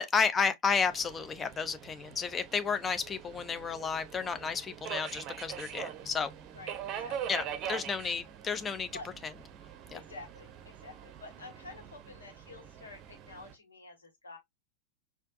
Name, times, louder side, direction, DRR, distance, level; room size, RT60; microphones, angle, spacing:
voice 1, 0.0-6.3 7.3-8.9 9.9-10.0, left 5 dB, 20° left, 0.5 m, -32 dB
Subway metro underground, 0.7-13.5, right 9 dB, 35° right, 0.7 m, -43 dB
voice 2, 6.5-7.3 7.7-8.0 8.9-9.1 9.9-14.4, left 3 dB, 75° left, 1.3 m, -49 dB
4.4 x 2.5 x 2.5 m
figure-of-eight pair, 90°, 0 cm